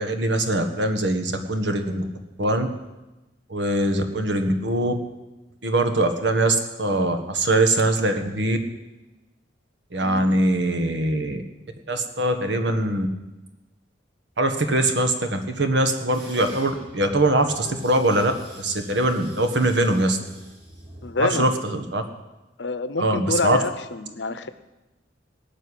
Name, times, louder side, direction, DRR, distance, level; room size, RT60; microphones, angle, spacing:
voice 1, 0.0-2.0 2.4-2.7 3.5-4.9 5.6-8.6 9.9-11.4 11.9-13.1 14.4-20.2 21.2-22.0 23.0-23.6, right 1 dB, 70° right, 7 dB, 1.6 m, -22 dB
voice 2, 10.0-10.4 21.0-21.5 22.6-24.5, left 3 dB, 70° left, 12 dB, 0.8 m, -27 dB
sound 1, 16.1-21.1, right 1 dB, 30° right, 7.5 m, -45 dB
18.0 x 6.8 x 9.9 m, 1.1 s
head